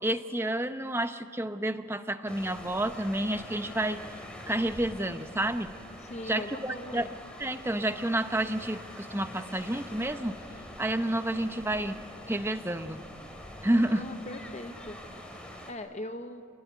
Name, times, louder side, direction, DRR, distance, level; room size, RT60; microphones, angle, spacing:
voice 1, 0.0-4.0 4.5-5.7 6.2-7.1 7.4-10.4 10.8-12.0 12.3-13.0 13.6-14.0, right 1 dB, 10° right, 9 dB, 0.8 m, -30 dB
sound 1, 2.3-15.7, left 1 dB, 5° left, 2.8 m, -45 dB
voice 2, 6.0-7.1 13.7-15.0 15.7-16.4, left 1 dB, 30° left, 7 dB, 0.9 m, -40 dB
27.5 x 20.0 x 9.5 m, 2.2 s
head